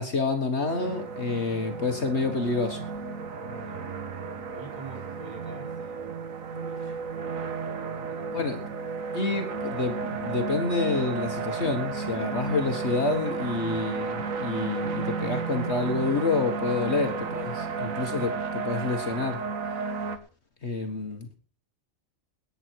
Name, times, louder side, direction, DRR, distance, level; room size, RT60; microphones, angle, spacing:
voice 1, 0.0-2.9 8.3-8.6 9.1-17.5 17.8-18.3 18.6-19.4 20.6-21.4, left 3 dB, 55° left, 5 dB, 1.7 m, -28 dB
sound 1, 0.7-20.2, right 5 dB, 80° right, 1.7 m, -33 dB
voice 2, 3.3-4.0 4.5-6.2 6.5-7.2 7.7-8.5 16.8-17.0 17.5-17.8 20.9-21.0, right 2 dB, 25° right, -2 dB, 6.0 m, -46 dB
18.5 x 9.3 x 4.6 m, 0.39 s
omnidirectional pair, 1.4 m